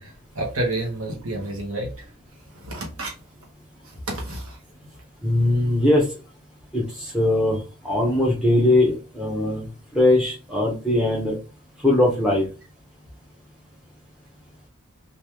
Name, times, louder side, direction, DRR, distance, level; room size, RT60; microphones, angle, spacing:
voice 1, 0.0-1.9 2.6-3.1 4.1-4.6, right 2 dB, 70° right, -1 dB, 1.0 m, -29 dB
voice 2, 5.2-6.1 6.7-7.6 7.8-9.7 9.9-11.4 11.8-12.4, left 1 dB, 5° right, -4 dB, 0.7 m, -20 dB
3.1 x 2.5 x 3.3 m, 0.34 s
head